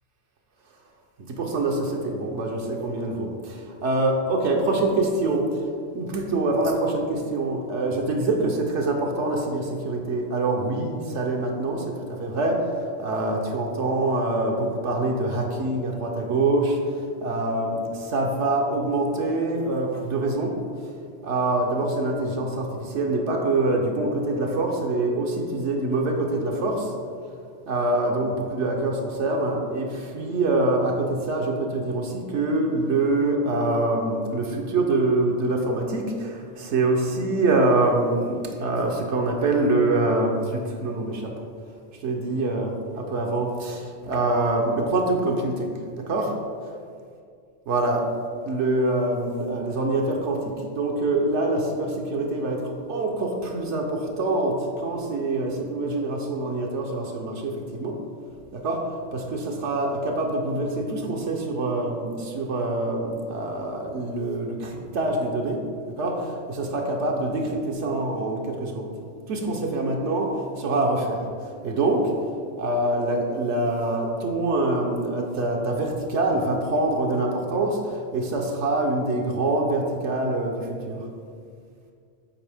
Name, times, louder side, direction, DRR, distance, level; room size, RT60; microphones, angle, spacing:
voice 1, 1.3-5.6 5.9-20.5 21.2-26.9 27.7-41.3 42.0-46.3 47.7-48.1 48.5-58.0 58.5-65.6 66.0-68.9 69.3-71.3 71.6-72.1 72.6-81.1, right 2 dB, 75° right, 1 dB, 1.1 m, -25 dB
8.8 x 4.3 x 3.4 m, 2.2 s
omnidirectional pair, 1.2 m